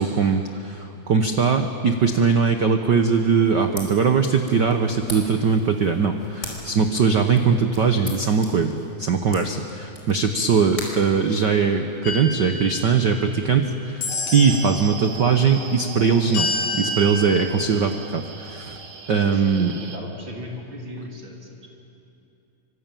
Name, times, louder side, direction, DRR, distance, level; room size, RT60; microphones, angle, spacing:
voice 1, 0.0-18.8 19.1-19.7, right 5 dB, 85° right, 6 dB, 0.9 m, -21 dB
sound 1, 3.4-12.0, left 1 dB, 20° left, 5.1 m, -41 dB
sound 2, 12.0-13.5 14.0-14.9 16.3-17.5, left 2 dB, 75° left, 4.6 m, -29 dB
sound 3, 14.1-20.0, right 6 dB, 65° right, 2.9 m, -39 dB
voice 2, 19.3-21.7, equal, 35° right, -1 dB, 4.1 m, -37 dB
25.5 x 24.5 x 9.1 m, 2.8 s
omnidirectional pair, 3.6 m